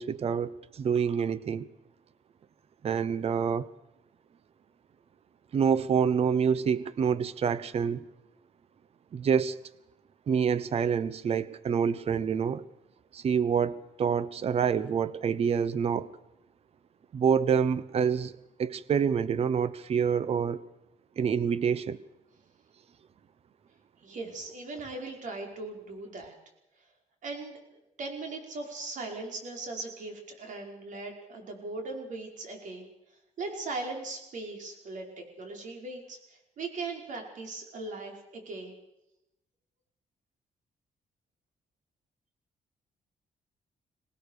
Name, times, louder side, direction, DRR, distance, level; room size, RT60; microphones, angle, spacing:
voice 1, 0.0-1.7 2.8-3.7 5.5-8.0 9.1-9.6 10.3-12.6 13.1-16.1 17.1-18.3 18.6-20.6 21.2-22.0, right 7 dB, 45° right, 17 dB, 0.8 m, -27 dB
voice 2, 24.0-26.3 27.2-27.6 28.0-32.9 33.4-38.8, right 3 dB, 65° right, 2 dB, 5.3 m, -39 dB
24.5 x 19.0 x 6.6 m, 0.90 s
cardioid pair, 135°, 14 cm